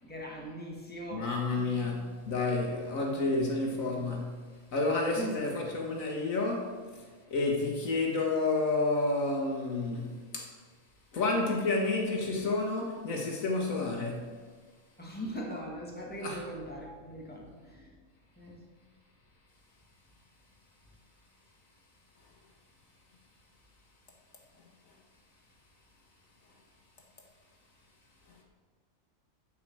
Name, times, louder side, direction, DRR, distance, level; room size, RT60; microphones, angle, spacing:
voice 1, 0.0-1.3 1.6-1.7 5.2-5.3 15.0-17.9 18.4-18.6, right 1 dB, 5° left, 1.8 m, -40 dB
voice 2, 1.1-10.5 11.1-14.3 16.2-16.4, left 3 dB, 80° left, 1.9 m, -30 dB
10.5 x 4.8 x 7.7 m
omnidirectional pair, 1.4 m